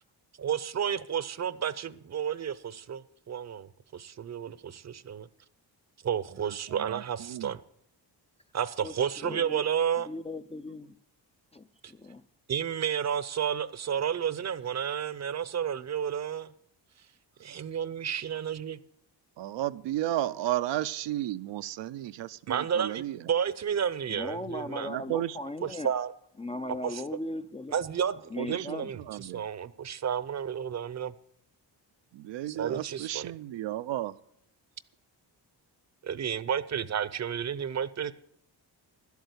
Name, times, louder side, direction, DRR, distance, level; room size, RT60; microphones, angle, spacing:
voice 1, 0.4-5.3 6.0-7.6 8.5-10.1 11.8-11.9 12.5-16.5 17.4-18.8 22.5-24.9 25.6-26.1 26.8-27.0 27.7-31.1 32.5-33.3 36.0-38.1, right 8 dB, 40° right, 0.6 m, -31 dB
voice 2, 6.7-7.5 19.4-23.2 24.8-25.4 28.4-29.5 32.1-34.1, right 13 dB, 80° right, 0.6 m, -33 dB
voice 3, 8.8-9.6 10.1-10.9 11.5-12.2 24.1-25.9 26.4-27.8 28.3-28.9, left 1 dB, 15° left, 0.4 m, -38 dB
11.5 x 8.3 x 8.1 m
cardioid pair, 95°, 43 cm